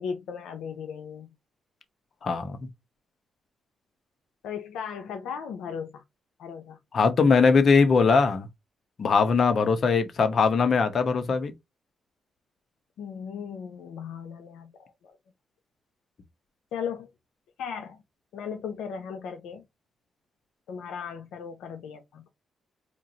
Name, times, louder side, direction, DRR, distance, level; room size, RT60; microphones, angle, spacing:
voice 1, 0.0-1.3 4.4-6.0 6.4-6.8 13.0-15.2 16.7-17.1 17.6-18.0 18.3-19.6 20.7-22.3, left 7 dB, 90° left, 0.6 m, -37 dB
voice 2, 2.2-2.6 6.9-8.5 9.0-11.5, left 5 dB, 55° left, 0.9 m, -21 dB
4.4 x 2.5 x 2.8 m
cardioid pair, 80°, 0 cm